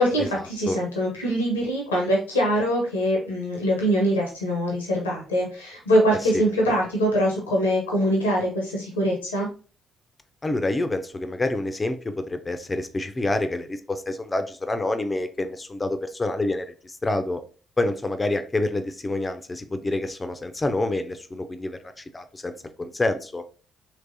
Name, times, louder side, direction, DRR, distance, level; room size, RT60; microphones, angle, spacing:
voice 1, 0.0-9.5, equal, 85° left, -2 dB, 0.7 m, -23 dB
voice 2, 10.4-17.4 17.8-23.4, left 2 dB, 25° left, 8 dB, 0.4 m, -27 dB
3.3 x 3.1 x 2.6 m, 0.38 s
figure-of-eight pair, 40°, 0 cm